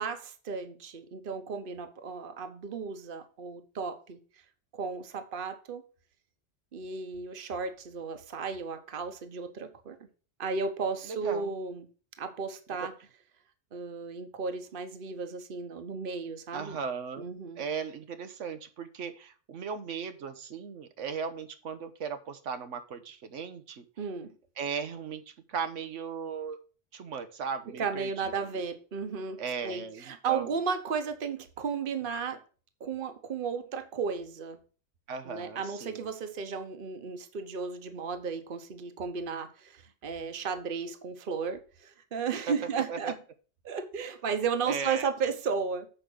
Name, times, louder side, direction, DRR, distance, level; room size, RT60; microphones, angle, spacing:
voice 1, 0.0-4.2 4.7-5.8 6.7-10.0 10.4-11.9 12.2-12.9 13.7-16.8 17.2-17.6 24.0-24.3 27.7-32.4 32.8-34.6 35.2-43.2 43.6-45.9, right 5 dB, 50° right, 1.1 m, -34 dB
voice 2, 16.5-23.8 24.6-26.6 26.9-28.1 29.4-30.5 35.1-36.1 42.9-43.1 44.7-45.1, right 6 dB, 90° right, 1.3 m, -37 dB
7.7 x 5.0 x 6.2 m
omnidirectional pair, 1.2 m